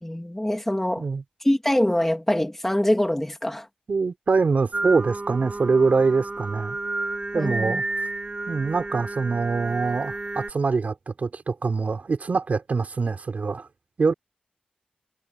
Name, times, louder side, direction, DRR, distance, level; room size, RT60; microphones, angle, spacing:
voice 1, 0.0-1.0 1.4-3.7 7.3-7.8, left 1 dB, 10° left, 3.2 m, -24 dB
voice 2, 3.9-6.8 7.3-7.8 8.5-13.7 14.0-14.1, right 4 dB, 70° right, 5.4 m, -24 dB
Singing, 4.7-10.5, right 2 dB, 35° right, 4.2 m, -31 dB
wide cardioid pair, 110°, 3 cm